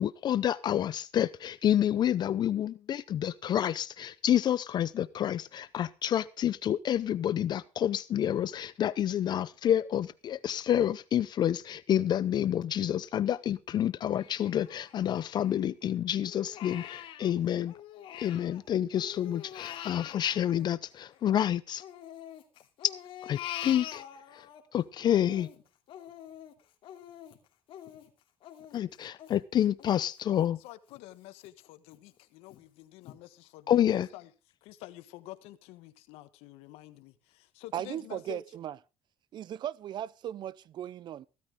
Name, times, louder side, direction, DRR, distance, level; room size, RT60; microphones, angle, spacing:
voice 1, 0.0-17.7 18.2-21.8 23.2-24.0 24.3-24.5 24.7-25.5 28.7-30.6 33.7-34.1, left 10 dB, 45° left, 0.6 m, -28 dB
Crying sobbing, 14.2-15.8 16.2-18.6 18.9-21.4 21.8-24.6 25.0-30.5 30.9-31.0 31.4-32.0 32.5-32.6 33.0-33.2, left 11 dB, 65° left, 2.8 m, -45 dB
voice 2, 30.3-34.3 34.6-38.4, left 16 dB, 85° left, 1.4 m, -49 dB
voice 3, 37.7-38.8 39.3-41.3, right 11 dB, 50° right, 0.6 m, -37 dB
16.0 x 13.0 x 3.6 m
cardioid pair, 115°, 10 cm